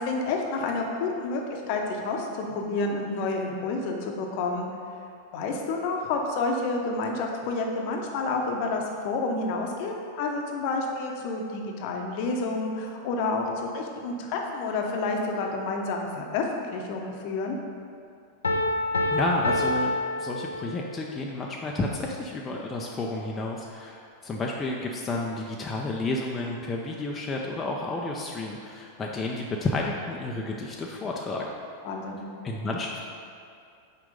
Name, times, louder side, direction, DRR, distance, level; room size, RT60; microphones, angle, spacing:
voice 1, 0.0-4.7 5.3-17.6 31.8-32.2, left 3 dB, 45° left, 2 dB, 0.9 m, -29 dB
Piano, 18.4-21.0, left 2 dB, 75° left, 0.5 m, -27 dB
voice 2, 19.1-31.5 32.4-33.0, left 2 dB, 20° left, -1 dB, 0.6 m, -31 dB
6.1 x 4.7 x 5.2 m, 2.4 s
figure-of-eight pair, 90°, 0 cm